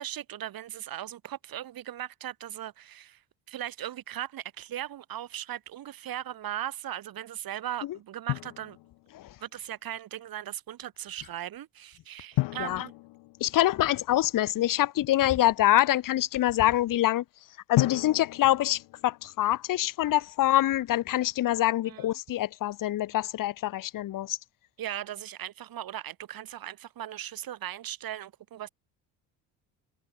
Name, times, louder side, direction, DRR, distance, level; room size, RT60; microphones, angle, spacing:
voice 1, 0.0-3.2 3.5-8.8 9.4-12.9 21.9-22.1 24.8-28.7, right 12 dB, 55° right, 2.3 m, -38 dB
Drum, 8.3-9.4 12.4-14.2 17.7-19.7, left 21 dB, 75° left, 1.1 m, -33 dB
voice 2, 13.4-17.2 17.7-24.4, left 14 dB, 50° left, 0.9 m, -25 dB
supercardioid pair, 80°, 41 cm